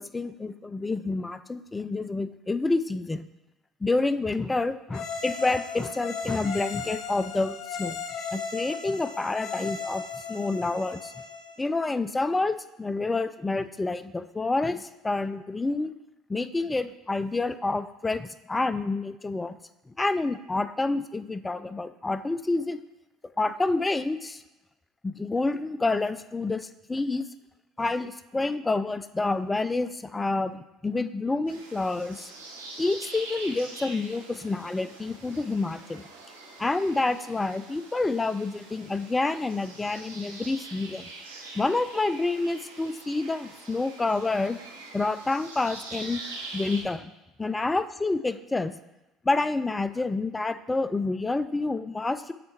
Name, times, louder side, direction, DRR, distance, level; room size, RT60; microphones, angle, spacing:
voice 1, 0.0-3.3 3.8-8.0 8.3-10.0 10.3-11.1 11.6-15.9 16.3-19.5 20.0-22.8 23.4-24.4 25.0-27.2 27.8-32.3 32.8-36.0 36.6-41.1 41.6-44.6 44.9-46.2 46.5-47.1 47.4-48.7 49.2-52.3, left 3 dB, 15° left, 13 dB, 0.3 m, -28 dB
sound 1, 4.9-11.6, left 5 dB, 55° left, 1.0 m, -36 dB
sound 2, 31.5-46.8, right 3 dB, 85° right, 0.7 m, -44 dB
7.5 x 4.5 x 2.9 m, 0.94 s
hypercardioid pair, 60°, 0 cm